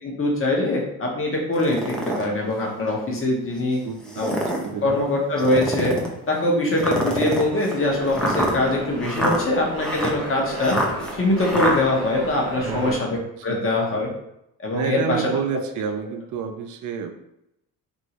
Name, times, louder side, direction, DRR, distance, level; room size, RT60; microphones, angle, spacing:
voice 1, 0.0-3.8 4.2-4.4 4.8-5.9 6.3-10.8 11.1-14.1 14.6-15.2, left 1 dB, 35° left, -1 dB, 0.9 m, -23 dB
sound 1, 1.5-2.2 2.9-3.0 4.0-4.7 5.4-6.1 6.8-11.8, equal, ahead, 0.4 m, -26 dB
voice 2, 3.8-5.0 12.6-13.0 13.4-13.6 14.7-17.1, right 7 dB, 55° right, 7 dB, 0.5 m, -30 dB
sound 2, 7.8-13.0, right 1 dB, 30° right, 0.9 m, -33 dB
3.0 x 2.6 x 2.9 m, 0.82 s
cardioid pair, 105°, 36 cm